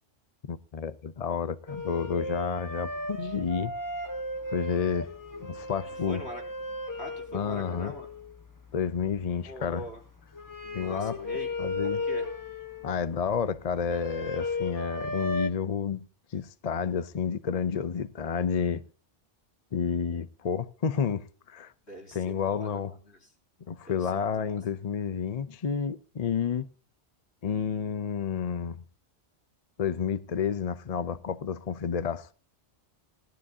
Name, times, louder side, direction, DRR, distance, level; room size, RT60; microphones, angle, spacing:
voice 1, 0.5-3.7 4.5-5.1 5.4-6.2 7.3-7.9 8.7-9.8 10.7-11.2 11.6-12.0 12.8-16.0 16.3-18.8 19.7-21.7 22.1-22.9 23.7-26.7 27.4-28.8 29.8-32.3, left 6 dB, 45° left, 0.6 m, -30 dB
sound 1, 1.7-15.5, left 2 dB, 15° left, 1.1 m, -36 dB
voice 2, 6.1-6.4 7.0-8.1 9.4-10.0 10.6-11.5 11.8-12.3 20.9-21.1 21.9-23.3 23.9-24.6, equal, 60° left, 3.6 m, -43 dB
18.0 x 12.5 x 2.7 m
omnidirectional pair, 1.2 m